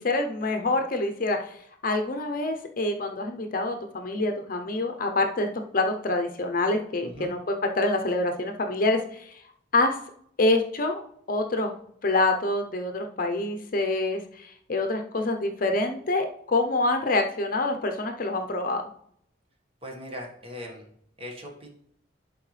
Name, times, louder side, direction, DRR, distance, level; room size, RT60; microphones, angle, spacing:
voice 1, 0.0-1.6 1.8-5.5 5.7-9.4 9.7-10.0 10.4-11.0 11.3-11.7 12.0-18.8, left 2 dB, 50° left, 5 dB, 0.7 m, -26 dB
voice 2, 19.8-20.9 21.2-21.7, equal, 30° right, 0 dB, 1.6 m, -39 dB
11.0 x 4.6 x 3.3 m, 0.68 s
head